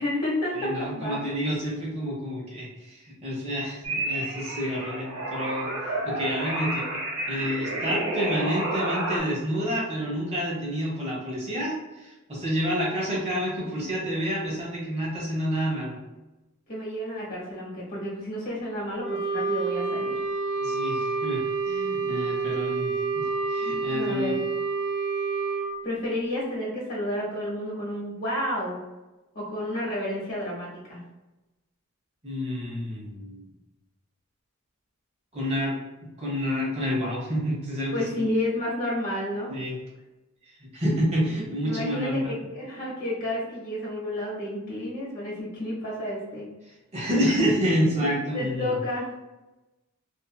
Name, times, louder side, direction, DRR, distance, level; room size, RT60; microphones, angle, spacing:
voice 1, 0.0-1.2 16.7-20.2 23.9-24.3 25.8-28.8 29.3-31.0 37.9-39.6 41.6-46.5 47.9-48.0 48.3-49.1, left 1 dB, 45° left, -6 dB, 1.4 m, -31 dB
voice 2, 0.5-5.7 6.0-7.0 7.3-16.0 20.6-24.3 32.2-33.5 35.3-35.8 36.2-37.9 39.5-39.8 40.6-42.3 46.9-48.7, equal, 30° right, -5 dB, 1.0 m, -29 dB
sound 1, 3.8-9.2, right 1 dB, 85° right, 1.0 m, -30 dB
Wind instrument woodwind instrument, 19.0-25.7, right 4 dB, 5° right, 0.7 m, -28 dB
2.7 x 2.6 x 2.2 m, 1.1 s
head